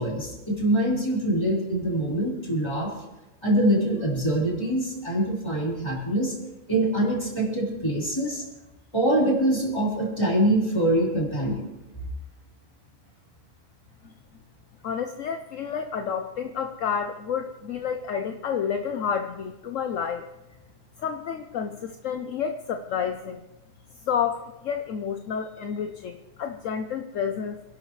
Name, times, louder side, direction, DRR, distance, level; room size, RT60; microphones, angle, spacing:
voice 1, 0.0-2.9 3.4-6.3 6.7-8.4 8.9-11.7, right 1 dB, 20° left, -5 dB, 4.6 m, -24 dB
voice 2, 14.8-20.3 21.0-23.4 24.0-27.6, left 7 dB, 70° left, 6 dB, 1.1 m, -30 dB
27.0 x 11.5 x 3.2 m, 1.0 s
omnidirectional pair, 1.4 m